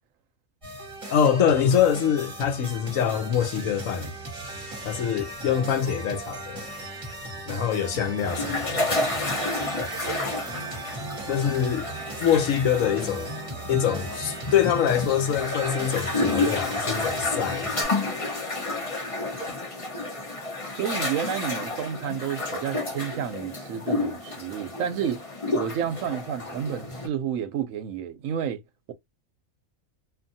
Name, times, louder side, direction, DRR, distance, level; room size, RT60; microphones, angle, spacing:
sound 1, 0.6-17.8, right 2 dB, 25° right, 1.1 m, -37 dB
voice 1, 1.1-4.1 4.8-6.7 7.5-8.9 11.3-11.9 12.2-13.3 13.7-17.7, left 8 dB, 75° left, 1.0 m, -24 dB
sound 2, 8.3-27.1, left 2 dB, 30° left, 0.8 m, -30 dB
voice 2, 20.8-25.2 25.5-28.6, right 8 dB, 75° right, 0.9 m, -30 dB
2.6 x 2.5 x 2.6 m
omnidirectional pair, 1.5 m